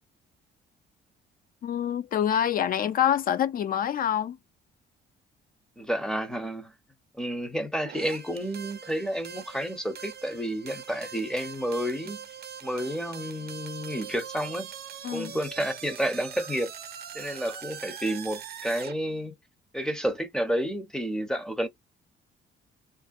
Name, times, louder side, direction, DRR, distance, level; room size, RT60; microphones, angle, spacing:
voice 1, 1.6-4.4 15.0-15.3, left 10 dB, 45° left, 0.4 m, -26 dB
voice 2, 5.8-6.7 7.1-12.2 12.6-14.7 15.1-16.7 17.1-19.4 19.7-21.7, equal, 5° left, 0.6 m, -30 dB
sound 1, 7.8-19.0, right 8 dB, 55° right, 0.6 m, -42 dB
2.5 x 2.1 x 2.4 m
cardioid pair, 90°, 20 cm